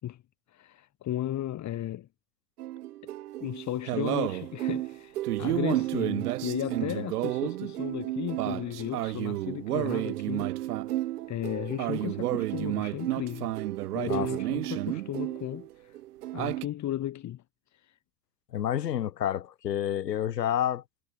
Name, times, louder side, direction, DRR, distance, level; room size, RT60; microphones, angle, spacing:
voice 1, 0.5-2.1 3.0-3.1 3.4-10.5 11.3-13.5 13.9-16.0 16.3-17.4 17.7-18.0, left 12 dB, 35° left, 4.8 m, -35 dB
sound 1, 2.6-15.7 15.9-16.7, right 15 dB, 70° right, 7.1 m, -31 dB
voice 2, 18.5-20.8, left 10 dB, 80° left, 4.6 m, -29 dB
hypercardioid pair, 100°, 48 cm